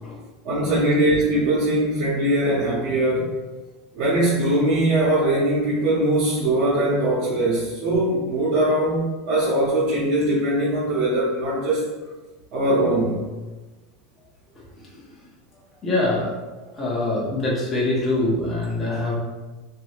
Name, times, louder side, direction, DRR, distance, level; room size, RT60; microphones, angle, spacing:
voice 1, 0.4-3.3 3.9-11.9 12.5-13.2, right 1 dB, 65° right, -7 dB, 1.0 m, -21 dB
voice 2, 15.8-16.4 16.7-19.1, left 2 dB, 20° left, -6 dB, 0.9 m, -24 dB
3.0 x 2.7 x 3.1 m, 1.2 s
supercardioid pair, 130°, 0 cm